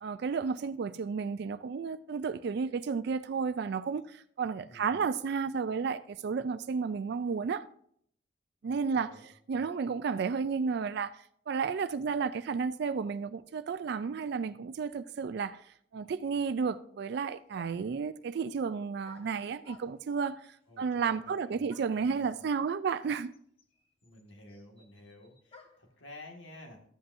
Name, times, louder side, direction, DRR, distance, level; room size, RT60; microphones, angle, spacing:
voice 1, 0.0-7.7 8.6-9.1 9.5-11.1 11.5-15.6 15.9-23.3, right 5 dB, 60° right, 0.3 m, -32 dB
voice 2, 4.6-5.1 8.6-9.7 20.7-22.4 24.0-26.8, left 1 dB, 85° left, 1.9 m, -52 dB
sound 1, 17.5-18.0 19.0-20.2 21.7-22.1 23.0-23.1 23.3-25.9, left 3 dB, 30° left, 1.3 m, -57 dB
13.5 x 7.8 x 2.6 m
head